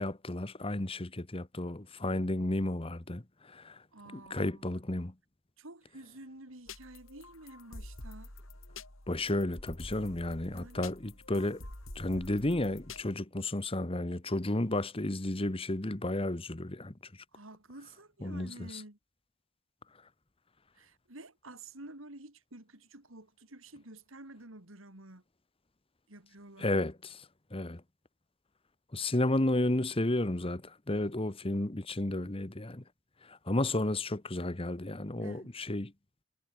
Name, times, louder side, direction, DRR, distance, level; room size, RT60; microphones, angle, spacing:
voice 1, 0.0-3.8 4.1-5.1 9.1-11.6 11.9-16.9 18.2-18.8 26.6-27.2 27.5-27.8 28.9-32.8 33.2-35.9, left 1 dB, 25° left, 1.3 m, -32 dB
voice 2, 3.9-4.8 5.6-8.3 10.5-10.9 17.3-19.0 20.7-25.2 26.1-26.8 35.2-35.5, right 2 dB, 75° right, 3.6 m, -50 dB
sound 1, 6.7-13.0, left 2 dB, 80° left, 6.5 m, -48 dB
head